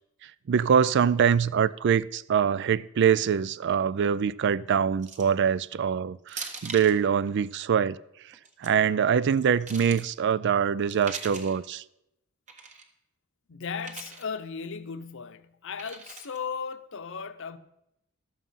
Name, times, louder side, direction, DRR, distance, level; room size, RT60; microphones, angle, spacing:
voice 1, 0.5-8.0 8.6-11.8, right 7 dB, 55° right, 0.4 m, -24 dB
sound 1, 5.0-5.4 6.3-7.0 8.3-8.7 9.3-10.0 10.9-11.6 12.5-12.8 13.8-14.2 15.8-16.4, right 4 dB, 35° right, 1.5 m, -41 dB
voice 2, 13.5-17.6, left 6 dB, 60° left, 0.7 m, -36 dB
12.5 x 7.4 x 5.7 m
head